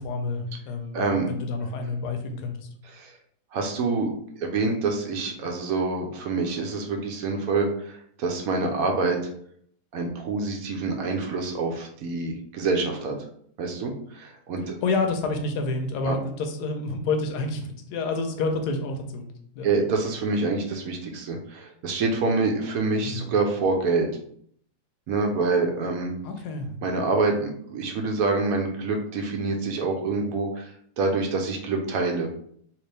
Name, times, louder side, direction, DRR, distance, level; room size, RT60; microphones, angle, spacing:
voice 1, 0.0-2.7 14.8-19.3 19.5-19.7 23.0-23.2 26.2-26.7, left 3 dB, 75° left, 5 dB, 1.1 m, -29 dB
voice 2, 0.9-1.3 2.9-3.1 3.5-4.1 4.4-9.2 9.9-13.2 13.6-14.7 16.1-16.2 19.6-24.1 25.1-26.1 26.8-32.4, right 3 dB, 70° right, 2 dB, 1.0 m, -26 dB
3.2 x 2.9 x 3.2 m, 0.64 s
omnidirectional pair, 1.8 m